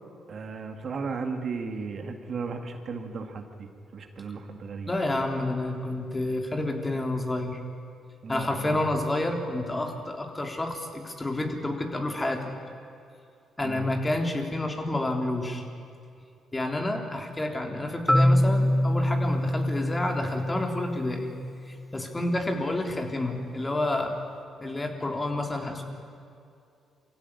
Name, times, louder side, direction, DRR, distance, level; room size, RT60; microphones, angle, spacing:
voice 1, 0.3-4.9 8.2-8.9 13.6-13.9, right 4 dB, 55° right, 5 dB, 2.2 m, -35 dB
voice 2, 4.9-7.6 8.3-12.5 13.6-15.6 16.5-21.3 21.7-24.1 24.6-25.8, left 1 dB, 20° left, 3 dB, 3.6 m, -29 dB
Marimba xylophone, 18.1-22.0, left 1 dB, 5° left, 0.6 m, -25 dB
24.0 x 16.0 x 9.9 m, 2.5 s
supercardioid pair, 60°, 0 cm